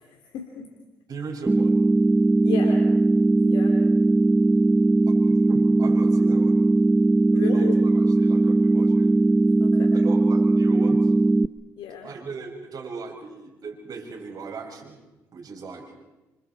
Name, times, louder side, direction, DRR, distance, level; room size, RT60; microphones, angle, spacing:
voice 1, 0.0-0.7 2.4-2.9 3.4-3.8 7.3-7.7 9.6-10.0 11.8-12.1, left 8 dB, 70° left, 3 dB, 2.9 m, -34 dB
voice 2, 1.1-1.8 5.1-6.6 7.3-7.9 8.2-9.2 9.9-11.1 12.0-15.0 15.3-15.9, right 4 dB, 50° right, 0 dB, 7.5 m, -38 dB
sound 1, 1.5-11.5, right 2 dB, 15° right, 0.7 m, -19 dB
28.0 x 26.5 x 4.7 m, 1.1 s
hypercardioid pair, 55°, 8 cm